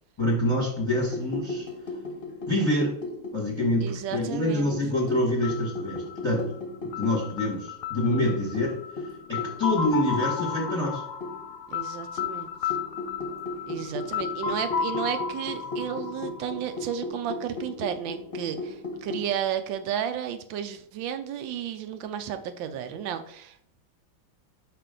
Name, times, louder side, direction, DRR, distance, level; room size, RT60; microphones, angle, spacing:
voice 1, 0.2-1.6 2.5-2.9 3.3-6.5 6.8-8.8 9.3-11.0, left 1 dB, 15° left, -3 dB, 1.2 m, -26 dB
sound 1, 1.0-3.7 4.1-7.3 7.5-7.6 8.0-11.6 12.2-19.3, left 2 dB, 45° left, 1.1 m, -37 dB
voice 2, 3.8-4.8 11.7-12.8 13.7-23.6, right 9 dB, 75° right, 9 dB, 1.2 m, -33 dB
sound 2, 5.4-17.2, left 7 dB, 70° left, 1.0 m, -34 dB
5.8 x 5.5 x 3.8 m, 0.66 s
omnidirectional pair, 2.3 m